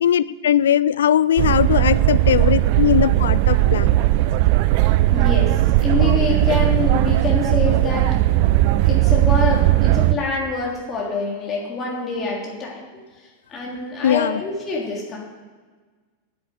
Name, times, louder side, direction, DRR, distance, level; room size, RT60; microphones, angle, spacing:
voice 1, 0.0-3.9 14.0-14.4, left 9 dB, 65° left, 18 dB, 0.5 m, -19 dB
sound 1, 1.4-10.2, right 16 dB, 45° right, 0.5 m, -17 dB
voice 2, 4.8-5.5 5.8-8.1 8.8-12.8 13.5-15.2, left 4 dB, 25° left, -3 dB, 3.2 m, -26 dB
10.5 x 10.0 x 8.1 m, 1.4 s
figure-of-eight pair, 90°, 0 cm